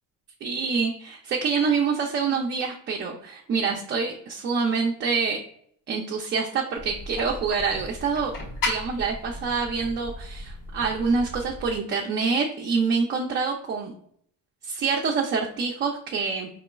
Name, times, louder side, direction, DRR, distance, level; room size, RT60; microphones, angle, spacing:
voice 1, 0.4-5.4 5.9-8.3 8.7-13.9 14.6-16.5, right 5 dB, 30° right, 0 dB, 0.4 m, -26 dB
sound 1, 6.8-11.8, left 2 dB, 60° left, 1.4 m, -35 dB
4.8 x 3.0 x 2.2 m, 0.66 s
cardioid pair, 155°, 36 cm